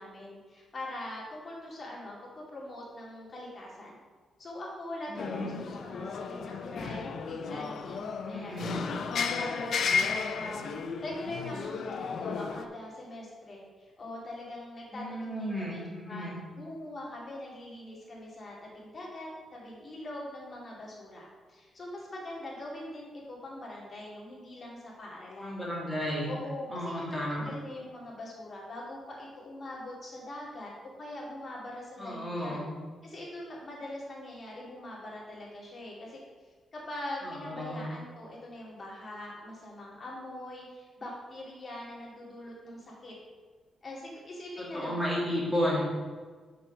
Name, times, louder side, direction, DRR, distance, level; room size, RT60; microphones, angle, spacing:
voice 1, 0.0-3.9 4.4-8.6 9.4-15.8 16.1-25.6 26.2-30.7 31.0-32.7 33.0-43.1 43.8-45.0, left 1 dB, 35° left, -4 dB, 2.4 m, -42 dB
voice 2, 5.1-5.6 8.2-8.8 14.9-16.4 25.4-26.3 26.7-27.5 32.0-32.7 37.2-37.9 44.6-45.8, equal, ahead, -6 dB, 2.5 m, -33 dB
sound 1, 5.2-12.7, left 5 dB, 60° left, 0.5 m, -33 dB
6.4 x 4.6 x 6.1 m, 1.5 s
cardioid pair, 135°, 0 cm